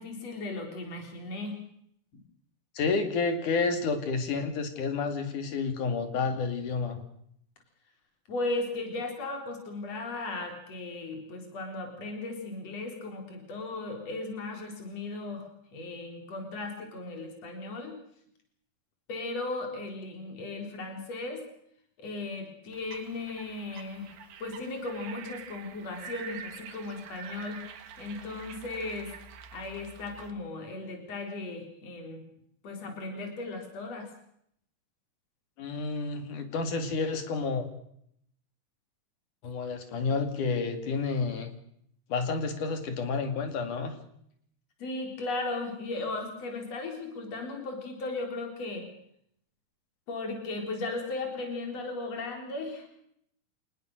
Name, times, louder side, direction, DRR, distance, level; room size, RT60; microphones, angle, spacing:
voice 1, 0.0-1.6 8.3-18.0 19.1-21.4 22.0-24.1 24.4-27.6 28.0-29.1 29.5-32.2 32.6-34.1 44.8-48.9 50.1-52.9, left 2 dB, 55° left, 4 dB, 5.1 m, -36 dB
voice 2, 2.8-7.0 35.6-37.7 39.4-41.5 42.1-43.9, left 4 dB, 80° left, 8 dB, 4.0 m, -30 dB
sound 1, 22.7-30.3, right 8 dB, 90° right, 3.2 m, -46 dB
26.0 x 20.0 x 6.5 m, 0.70 s
omnidirectional pair, 3.5 m